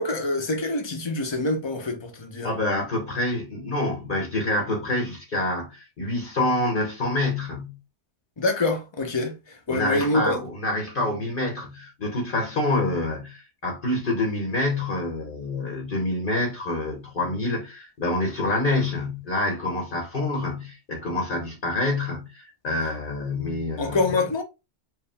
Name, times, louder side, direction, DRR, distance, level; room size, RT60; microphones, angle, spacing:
voice 1, 0.0-2.5 8.4-10.4 23.8-24.4, left 2 dB, 25° left, 0.8 m, -26 dB
voice 2, 2.4-7.7 9.7-24.0, left 2 dB, 45° left, 1.2 m, -27 dB
4.8 x 2.2 x 3.4 m
omnidirectional pair, 1.2 m